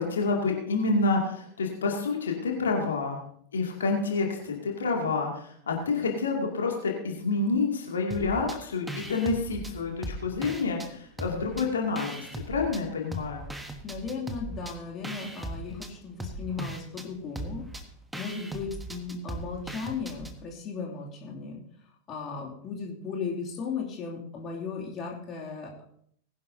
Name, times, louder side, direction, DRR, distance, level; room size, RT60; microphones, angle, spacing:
voice 1, 0.0-3.2 3.5-13.4, left 3 dB, 70° left, 0 dB, 2.4 m, -28 dB
sound 1, 8.1-8.6 8.9-10.9 11.2-12.8 13.1-20.4, right 1 dB, 5° right, 1.3 m, -39 dB
voice 2, 13.8-17.6 18.1-21.6 22.1-25.8, left 5 dB, 30° left, -2 dB, 2.7 m, -36 dB
20.0 x 11.0 x 2.8 m, 0.64 s
figure-of-eight pair, 90°, 0 cm